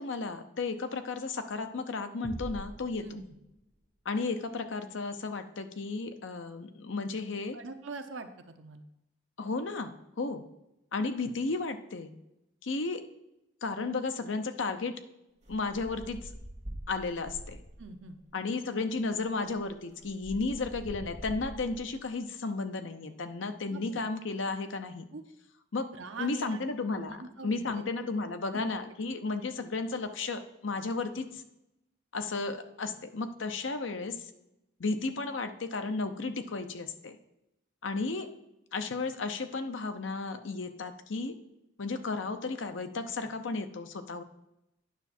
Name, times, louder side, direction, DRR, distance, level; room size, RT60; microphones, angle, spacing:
voice 1, 0.0-3.0 4.0-7.6 9.4-10.4 10.9-12.1 12.6-13.0 13.6-14.9 15.5-16.3 16.9-17.6 18.3-25.0 25.7-25.9 26.2-27.2 27.4-31.4 32.1-34.3 34.8-37.2 37.8-38.3 38.7-41.3 41.8-44.2, left 3 dB, 80° left, 8 dB, 0.7 m, -33 dB
Cinematic impact, 2.2-4.0, equal, 15° right, 1.1 m, -44 dB
voice 2, 7.5-8.8 17.8-18.2 23.7-23.8 25.1-25.2 25.9-26.6 26.9-28.1 28.5-28.7, right 3 dB, 85° right, 7 dB, 0.8 m, -43 dB
sound 1, 15.4-18.0 19.0-19.1 19.3-22.0, right 1 dB, 35° right, 1.6 m, -45 dB
9.5 x 5.8 x 4.3 m, 0.87 s
head